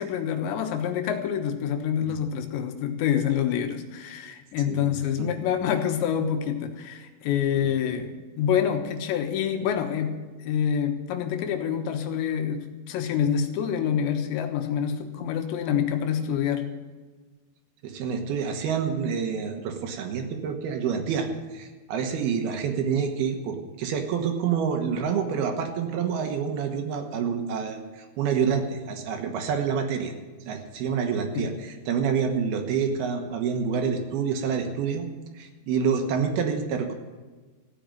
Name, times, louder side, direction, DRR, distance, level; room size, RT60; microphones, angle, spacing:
voice 1, 0.0-10.2 10.4-16.7 31.4-31.5, left 8 dB, 90° left, 6 dB, 3.5 m, -27 dB
voice 2, 4.7-5.3 17.8-30.1 30.5-35.1 35.3-36.9, right 6 dB, 70° right, 5 dB, 3.0 m, -27 dB
15.5 x 7.8 x 9.0 m, 1.3 s
omnidirectional pair, 4.9 m